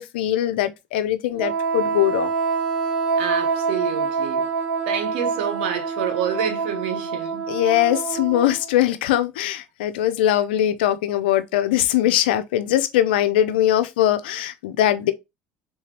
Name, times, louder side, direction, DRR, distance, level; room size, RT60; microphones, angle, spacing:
voice 1, 0.0-2.3 7.5-15.1, left 12 dB, 85° left, 0.4 m, -21 dB
Wind instrument woodwind instrument, 1.4-8.7, right 5 dB, 35° right, 2.1 m, -26 dB
voice 2, 3.2-4.4 4.9-7.4, right 8 dB, 80° right, 1.1 m, -28 dB
3.6 x 2.7 x 2.9 m
hypercardioid pair, 80°, 5 cm